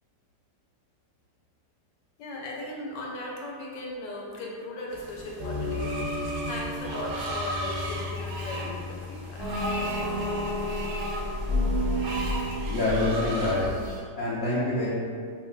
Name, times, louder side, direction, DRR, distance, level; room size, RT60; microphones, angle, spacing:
voice 1, 2.2-5.9 6.4-9.5, left 1 dB, 85° left, -3 dB, 1.3 m, -37 dB
sound 1, 4.9-14.0, left 1 dB, 15° left, 0.5 m, -31 dB
Screech, 5.7-13.7, right 1 dB, 70° right, 0.9 m, -37 dB
voice 2, 12.7-13.7 14.2-14.9, left 2 dB, 60° left, -10 dB, 0.6 m, -26 dB
5.2 x 2.0 x 2.4 m, 2.2 s
omnidirectional pair, 1.9 m